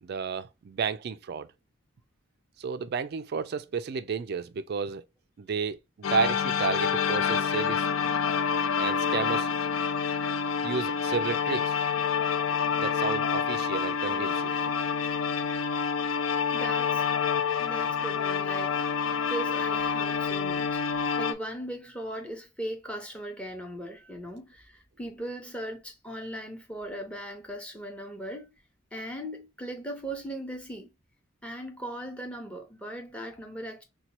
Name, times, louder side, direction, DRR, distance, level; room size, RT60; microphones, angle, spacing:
voice 1, 0.0-1.5 2.6-5.0 5.4-7.9 8.8-9.5 10.6-11.8 12.8-14.5, right 5 dB, 50° right, 0.3 m, -32 dB
sound 1, 6.0-21.3, left 6 dB, 75° left, 0.4 m, -27 dB
voice 2, 16.5-17.0 17.6-18.8 19.1-28.5 28.9-30.9 31.4-33.8, right 1 dB, 5° left, 0.8 m, -38 dB
2.9 x 2.2 x 4.1 m
head